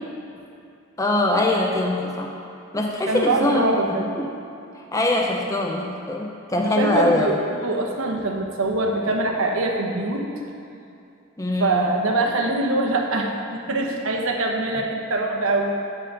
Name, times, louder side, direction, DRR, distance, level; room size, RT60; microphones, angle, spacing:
voice 1, 1.0-2.3 2.7-3.7 4.0-4.4 4.9-7.3 11.4-11.9, left 2 dB, 15° left, 0 dB, 0.5 m, -23 dB
voice 2, 3.1-4.0 6.6-10.3 11.6-15.9, right 2 dB, 85° right, 1 dB, 1.0 m, -23 dB
11.0 x 3.9 x 6.7 m, 2.6 s
head